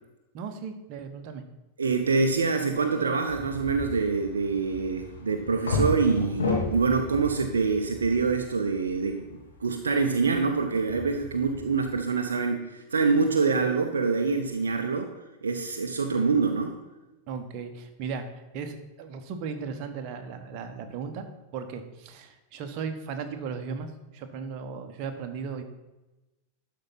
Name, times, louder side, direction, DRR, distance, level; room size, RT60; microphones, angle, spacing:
voice 1, 0.3-1.4 17.3-21.2 21.5-25.6, right 5 dB, 40° right, 6 dB, 1.1 m, -36 dB
voice 2, 1.8-15.1 15.4-16.8, right 4 dB, 70° right, 5 dB, 0.7 m, -25 dB
sound 1, 3.3-11.9, left 2 dB, 70° left, 2.2 m, -34 dB
12.0 x 4.7 x 5.8 m, 1.0 s
figure-of-eight pair, 90°, 0 cm